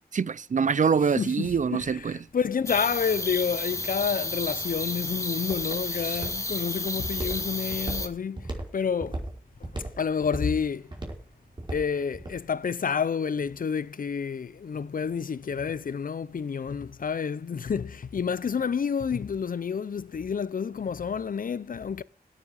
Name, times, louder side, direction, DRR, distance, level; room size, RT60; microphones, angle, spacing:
voice 1, 0.0-2.2, right 6 dB, 50° right, 0.6 m, -25 dB
voice 2, 1.2-9.2 9.6-10.9 11.7-22.0, left 6 dB, 60° left, 0.7 m, -29 dB
sound 1, 2.7-8.1, left 2 dB, 20° left, 2.2 m, -32 dB
Walk footsteps, 4.4-12.4, right 1 dB, 30° right, 4.9 m, -37 dB
17.0 x 7.5 x 6.5 m
wide cardioid pair, 115°, 16 cm